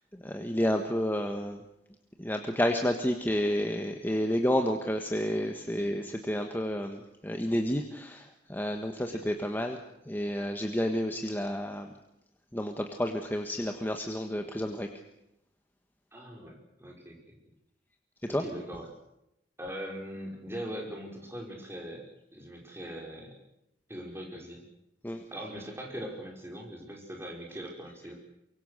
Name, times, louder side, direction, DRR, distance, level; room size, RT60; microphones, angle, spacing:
voice 1, 0.2-1.6 2.2-9.8 10.1-11.9 12.5-14.9 18.3-18.4 25.0-25.2, equal, 10° left, 4 dB, 1.4 m, -30 dB
voice 2, 16.1-17.4 18.3-18.9 19.6-22.0 22.3-23.4 23.9-24.6 25.3-28.1, equal, 15° right, 0 dB, 5.6 m, -41 dB
24.5 x 23.5 x 6.6 m, 0.85 s
head